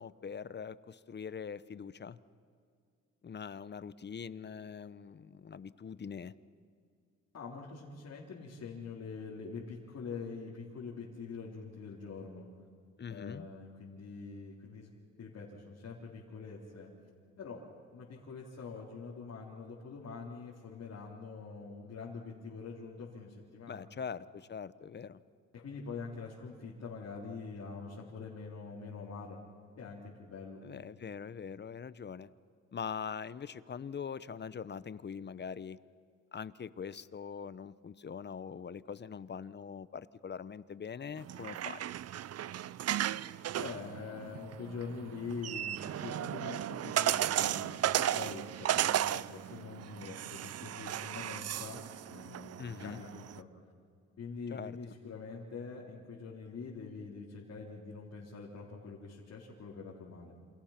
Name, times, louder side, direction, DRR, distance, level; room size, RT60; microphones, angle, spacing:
voice 1, 0.0-2.2 3.2-6.3 13.0-13.5 23.7-25.2 30.6-32.3 32.7-35.8 36.3-41.8 52.6-53.0 54.5-54.9, left 6 dB, 35° left, 16 dB, 0.9 m, -43 dB
voice 2, 7.3-12.5 13.1-14.9 15.2-16.9 17.4-17.6 17.9-23.9 25.5-29.4 29.8-30.6 43.6-53.5 54.2-60.3, left 5 dB, 55° left, -4 dB, 4.0 m, -45 dB
sound 1, 41.2-53.4, right 11 dB, 55° right, 0.6 m, -35 dB
28.5 x 27.5 x 6.0 m, 2.2 s
cardioid pair, 90°, 30 cm